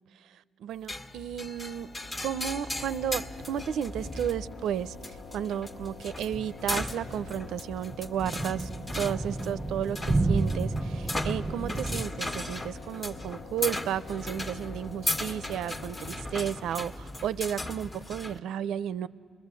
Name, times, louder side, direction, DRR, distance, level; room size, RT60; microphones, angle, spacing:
voice 1, 0.6-1.9 2.2-8.7 9.0-19.1, right 9 dB, 80° right, 0.5 m, -33 dB
sound 1, 0.9-18.4, left 1 dB, 25° left, 1.3 m, -37 dB
sound 2, 1.5-17.4, left 5 dB, 70° left, 0.8 m, -47 dB
sound 3, 6.6-12.0, right 2 dB, 20° right, 0.6 m, -31 dB
29.0 x 21.5 x 8.3 m
cardioid pair, 90°, 0 cm